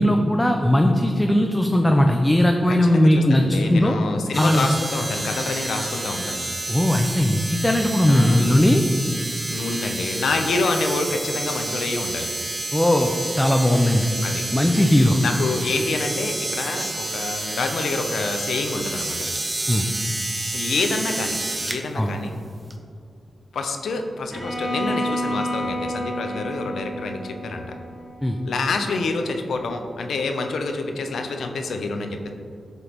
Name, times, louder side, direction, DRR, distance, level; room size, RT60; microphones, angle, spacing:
voice 1, 0.0-4.0 4.4-4.7 6.7-8.8 12.7-14.1 14.5-15.2 19.7-19.9 21.9-22.1 28.2-28.4, left 1 dB, 10° left, 3 dB, 0.4 m, -18 dB
voice 2, 2.7-6.4 8.0-8.5 9.5-12.3 14.2-14.4 15.2-19.3 20.5-21.4 21.6-22.3 23.5-27.7 28.5-32.3, left 3 dB, 90° left, 5 dB, 0.5 m, -27 dB
sound 1, 4.3-21.8 22.7-22.8, right 2 dB, 30° right, 0.7 m, -29 dB
Bowed string instrument, 24.3-28.3, equal, 10° right, 1.4 m, -29 dB
7.8 x 5.2 x 3.0 m, 2.5 s
cardioid pair, 80°, 0 cm